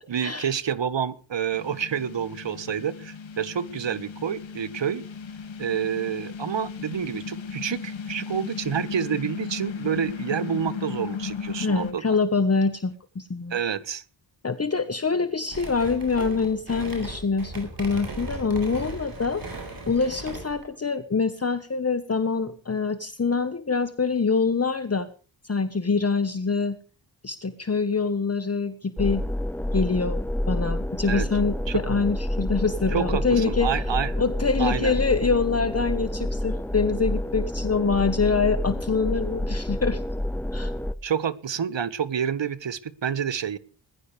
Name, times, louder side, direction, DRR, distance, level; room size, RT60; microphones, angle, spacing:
voice 1, 0.1-5.0 5.6-12.2 13.5-14.0 31.1-31.2 31.7-31.8 32.9-34.2 34.6-34.9 41.0-43.6, right 8 dB, 75° right, 16 dB, 1.4 m, -28 dB
sound 1, 1.5-11.9, left 6 dB, 85° left, 2.1 m, -36 dB
voice 2, 11.6-13.6 14.4-25.1 25.4-26.8 27.2-29.2 29.7-33.7 34.2-40.0 40.5-40.7, left 4 dB, 35° left, 11 dB, 1.3 m, -25 dB
sound 2, 15.5-20.7, right 2 dB, 50° right, 7.5 m, -37 dB
sound 3, 29.0-40.9, left 1 dB, 5° left, 1.0 m, -28 dB
20.5 x 15.0 x 3.4 m, 0.37 s
wide cardioid pair, 90°, 45 cm